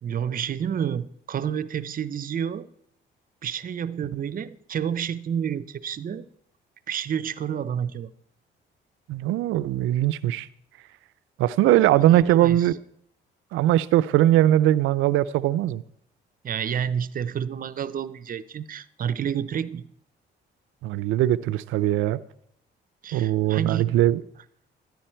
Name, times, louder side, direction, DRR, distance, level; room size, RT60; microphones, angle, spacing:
voice 1, 0.0-2.7 3.4-6.3 6.9-8.1 12.0-12.7 16.4-19.9 23.0-24.0, right 8 dB, 45° right, 0.6 m, -29 dB
voice 2, 9.1-10.5 11.4-12.7 13.5-15.8 20.8-22.2 23.1-24.2, right 13 dB, 90° right, 0.5 m, -20 dB
12.5 x 10.5 x 4.4 m
cardioid pair, 90°, 20 cm